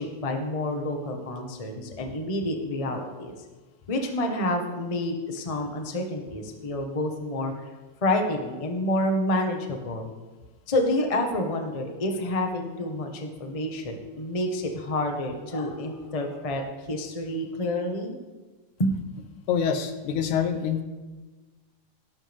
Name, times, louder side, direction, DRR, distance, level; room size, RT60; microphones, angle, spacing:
voice 1, 0.0-3.3 3.9-7.5 8.0-10.1 10.7-18.1 18.8-18.9, left 1 dB, 25° left, 3 dB, 0.7 m, -28 dB
voice 2, 19.5-20.8, left 7 dB, 85° left, 8 dB, 2.4 m, -26 dB
17.5 x 12.5 x 3.6 m, 1.3 s
omnidirectional pair, 3.3 m